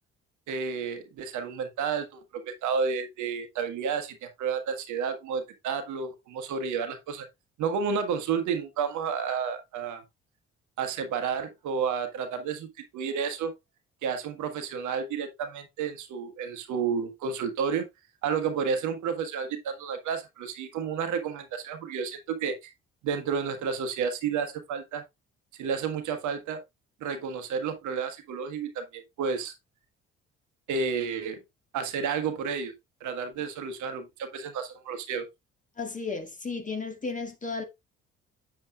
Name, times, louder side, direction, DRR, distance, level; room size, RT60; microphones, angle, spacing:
voice 1, 0.5-7.3 7.6-10.0 10.8-13.5 14.0-17.9 18.2-22.7 23.0-25.0 25.5-26.6 27.0-29.5 30.7-31.4 31.7-32.7 33.0-35.3, right 6 dB, 55° right, 1.3 m, -31 dB
voice 2, 35.8-37.6, left 4 dB, 20° left, 2.0 m, -34 dB
7.6 x 7.4 x 2.3 m
figure-of-eight pair, 45°, 35 cm